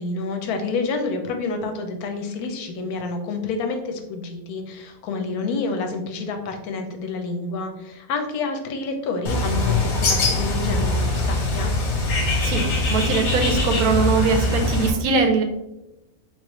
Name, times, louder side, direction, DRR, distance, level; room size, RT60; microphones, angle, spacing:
voice 1, 0.0-11.7, left 4 dB, 90° left, 5 dB, 1.2 m, -28 dB
Bird, 9.3-14.9, left 2 dB, 70° left, 1.4 m, -22 dB
voice 2, 12.4-15.4, right 4 dB, 85° right, 5 dB, 1.2 m, -21 dB
3.9 x 3.1 x 3.1 m, 0.90 s
omnidirectional pair, 1.5 m